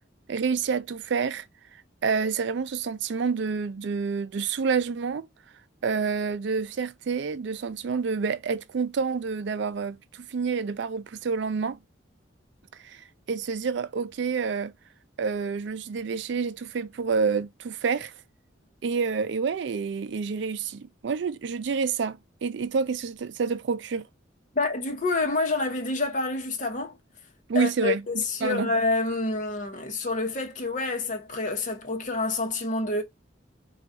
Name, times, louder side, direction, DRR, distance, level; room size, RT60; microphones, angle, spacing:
voice 1, 0.3-1.4 1.7-5.3 5.8-11.8 12.8-14.7 15.2-18.1 18.8-24.1 27.5-28.7, right 5 dB, 60° right, 0.4 m, -28 dB
voice 2, 24.5-27.0 27.5-33.0, left 3 dB, 40° left, 0.9 m, -28 dB
3.9 x 2.4 x 4.6 m
head